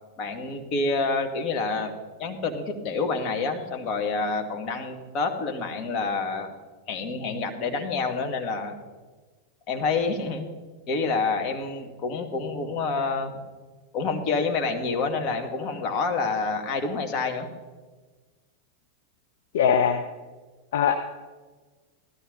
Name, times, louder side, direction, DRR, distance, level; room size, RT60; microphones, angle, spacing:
voice 1, 0.2-1.9 2.2-6.5 6.9-8.7 9.7-10.5 10.9-13.4 13.9-17.5, left 4 dB, 40° left, 5 dB, 2.2 m, -28 dB
voice 2, 19.5-20.0 20.7-21.0, left 8 dB, 65° left, 7 dB, 0.8 m, -21 dB
16.0 x 13.0 x 4.0 m, 1.3 s
figure-of-eight pair, 90°, 0 cm